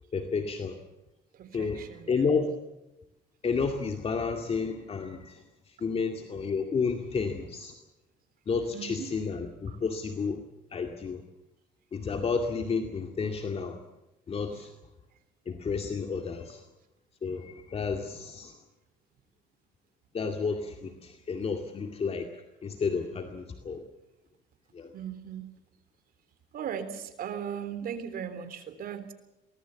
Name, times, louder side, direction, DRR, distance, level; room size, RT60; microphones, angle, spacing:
voice 1, 0.1-0.8 1.5-2.5 3.4-7.7 8.5-10.4 10.7-11.2 11.9-13.8 14.3-14.7 15.5-16.6 17.2-18.6 20.1-22.3 22.6-23.8 24.7-24.9, left 5 dB, 35° left, 4 dB, 2.2 m, -31 dB
voice 2, 1.3-2.3 8.7-9.1 9.7-9.8 14.5-14.7 24.9-25.5 26.5-29.1, right 8 dB, 60° right, 10 dB, 3.5 m, -38 dB
23.5 x 19.5 x 7.1 m, 0.97 s
cardioid pair, 110°, 17 cm